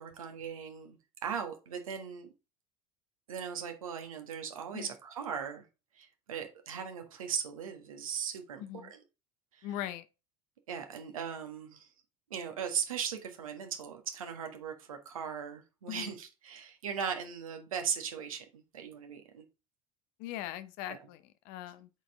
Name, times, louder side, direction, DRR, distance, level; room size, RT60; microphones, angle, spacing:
voice 1, 0.0-2.3 3.3-5.6 5.9-9.0 9.5-9.7 10.7-11.9 12.3-19.4 20.9-21.0, right 7 dB, 75° right, 1.5 m, -38 dB
voice 2, 8.6-8.9 9.6-10.1 15.9-16.1 20.2-21.9, left 13 dB, 55° left, 0.8 m, -40 dB
8.0 x 4.4 x 3.5 m
figure-of-eight pair, 70°, 18 cm